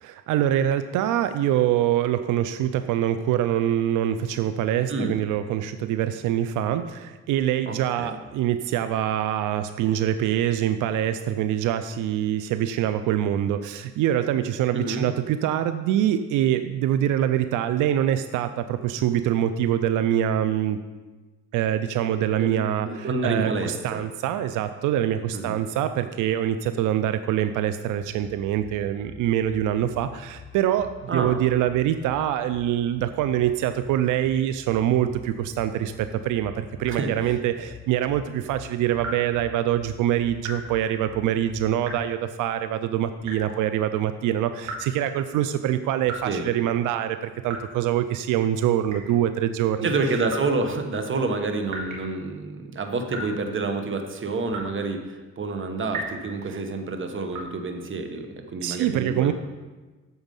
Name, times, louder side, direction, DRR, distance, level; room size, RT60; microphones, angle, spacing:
voice 1, 0.0-20.8 21.5-49.9 56.5-56.6 58.6-59.3, right 11 dB, 90° right, 11 dB, 0.5 m, -24 dB
voice 2, 7.6-8.2 14.7-15.1 22.4-24.0 25.3-25.6 31.1-31.3 36.9-37.4 46.2-46.5 49.8-59.3, right 3 dB, 40° right, 6 dB, 1.3 m, -28 dB
sound 1, 28.0-41.7, left 7 dB, 65° left, 2.7 m, -47 dB
sound 2, 39.0-39.4 40.4-40.7 41.8-42.2 43.2-43.6 44.6-45.1 46.0-46.3 47.4-47.8 48.9-49.2 50.3-50.5 51.7-52.1 53.1-53.4 54.5-54.8 55.9-56.2 57.3-57.5, right 1 dB, 70° right, 2.5 m, -36 dB
9.4 x 7.0 x 5.3 m, 1.3 s
cardioid pair, 90°, 30 cm